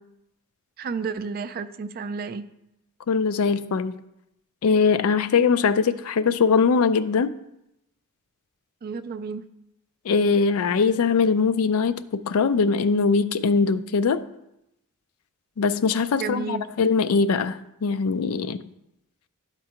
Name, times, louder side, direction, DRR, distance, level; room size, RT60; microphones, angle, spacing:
voice 1, 0.8-2.5 8.8-9.5 16.2-16.7, right 5 dB, 45° right, 0.3 m, -31 dB
voice 2, 3.1-4.0 4.6-7.3 10.1-14.2 15.6-18.6, left 5 dB, 75° left, 0.4 m, -21 dB
12.0 x 4.5 x 2.9 m
head